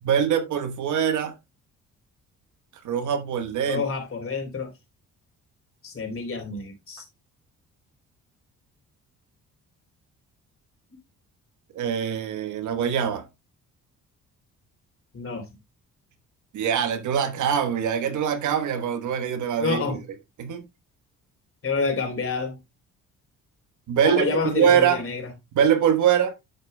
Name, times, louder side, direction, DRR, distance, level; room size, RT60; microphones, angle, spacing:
voice 1, 0.0-1.3 2.8-3.8 11.7-13.3 16.5-20.0 20.4-20.7 23.9-25.0 25.5-26.3, right 8 dB, 75° right, 1.4 m, -23 dB
voice 2, 3.6-4.7 5.8-7.0 15.1-15.4 19.6-20.0 21.6-22.6 24.0-25.3, left 4 dB, 45° left, 3.6 m, -28 dB
9.3 x 8.1 x 2.2 m
cardioid pair, 90°, 30 cm